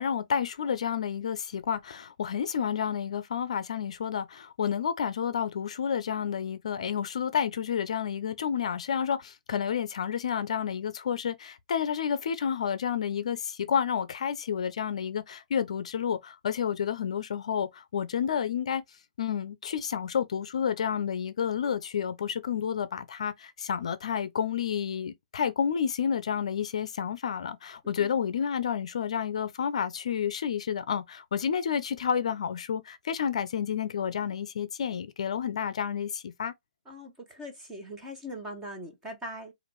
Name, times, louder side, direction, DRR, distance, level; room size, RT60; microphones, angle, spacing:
voice 1, 0.0-18.8 19.2-36.5, left 8 dB, 50° left, 0.5 m, -30 dB
voice 2, 36.9-39.5, equal, 10° right, 0.9 m, -41 dB
4.9 x 2.5 x 3.1 m
hypercardioid pair, 165°, 4 cm